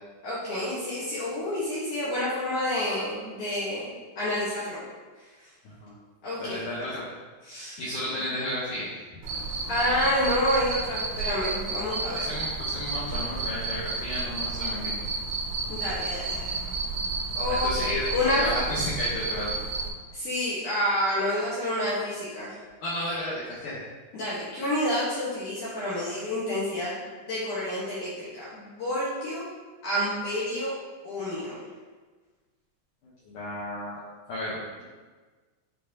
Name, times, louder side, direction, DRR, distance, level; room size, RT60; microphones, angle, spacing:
voice 1, 0.2-4.8 6.2-6.9 7.5-7.8 9.7-12.3 15.7-16.4 17.3-18.4 20.1-22.6 24.1-27.0 27.3-29.5 29.8-30.7 31.0-31.6, left 1 dB, 65° left, -9 dB, 2.0 m, -29 dB
voice 2, 5.6-6.0 6.4-7.1 7.5-9.2 11.9-14.9 17.5-18.0 18.3-19.6 22.8-23.8 33.0-34.0 34.3-34.8, left 1 dB, 85° left, -8 dB, 1.8 m, -33 dB
Cricket, 9.2-19.9, right 3 dB, 80° right, 3.2 m, -31 dB
9.7 x 3.9 x 2.8 m, 1.4 s
omnidirectional pair, 5.1 m